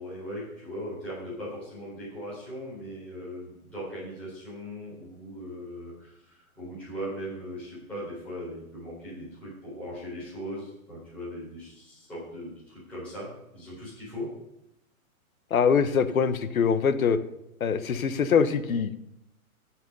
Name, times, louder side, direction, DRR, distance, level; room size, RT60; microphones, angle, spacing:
voice 1, 0.0-14.3, equal, 5° left, -12 dB, 4.0 m, -39 dB
voice 2, 15.5-17.2 17.6-18.9, left 6 dB, 70° left, 12 dB, 1.2 m, -23 dB
15.5 x 6.1 x 5.4 m, 0.84 s
hypercardioid pair, 180°, 43 cm